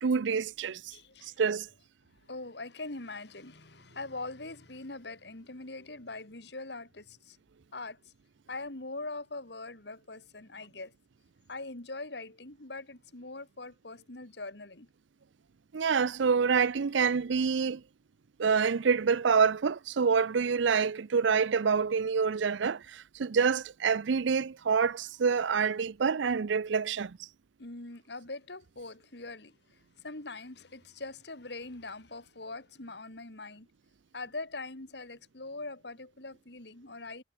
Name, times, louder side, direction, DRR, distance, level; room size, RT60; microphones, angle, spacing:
voice 1, 0.0-0.9 1.4-1.7 15.7-17.8 18.4-27.2, right 5 dB, 75° right, 0.5 m, -27 dB
voice 2, 0.9-1.4 2.3-7.4 7.7-8.1 8.5-10.9 11.5-14.9 27.6-29.6 30.0-33.7 34.1-37.2, left 2 dB, 65° left, 2.4 m, -42 dB
head